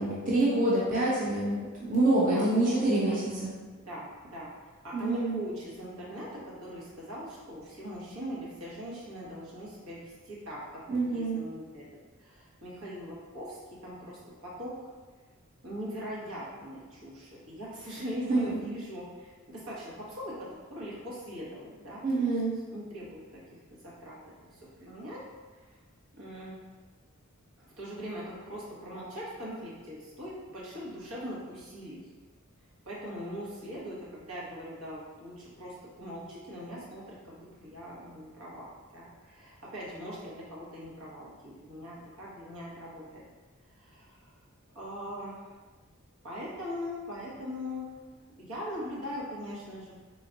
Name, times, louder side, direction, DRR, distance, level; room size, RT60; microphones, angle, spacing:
voice 1, 0.0-3.5 4.9-5.4 10.9-11.4 18.3-18.4 22.0-22.5, right 2 dB, 40° right, -7 dB, 0.8 m, -26 dB
voice 2, 2.2-3.2 3.8-4.5 4.8-11.8 12.2-14.7 15.6-22.3 22.7-23.4 23.7-24.2 24.5-25.2 25.6-25.7 26.1-26.5 27.6-32.0 32.8-38.7 38.9-43.2 43.8-44.3 44.7-45.5 46.2-47.9 48.4-49.9, equal, 80° right, -7 dB, 1.3 m, -41 dB
3.8 x 2.4 x 3.9 m, 1.3 s
head